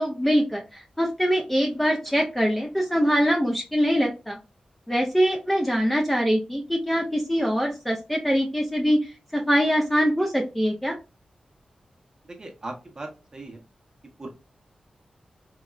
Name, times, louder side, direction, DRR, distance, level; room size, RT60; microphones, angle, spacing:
voice 1, 0.0-4.4 4.9-11.0, equal, 5° left, 1 dB, 0.3 m, -23 dB
voice 2, 12.3-13.6 14.2-14.3, right 2 dB, 30° right, 2 dB, 0.7 m, -38 dB
3.7 x 2.0 x 2.3 m, 0.29 s
wide cardioid pair, 155°, 2 cm